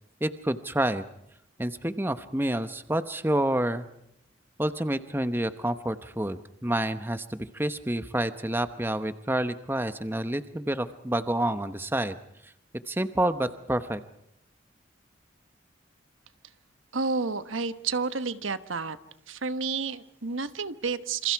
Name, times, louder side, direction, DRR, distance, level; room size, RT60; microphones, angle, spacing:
voice 1, 0.2-1.0 1.6-3.8 4.6-12.2 12.4-12.5 12.9-14.0, right 1 dB, 10° right, 10 dB, 0.9 m, -28 dB
voice 2, 16.9-19.0 19.3-21.3, right 4 dB, 85° right, 12 dB, 1.2 m, -30 dB
28.0 x 27.5 x 4.7 m, 0.77 s
head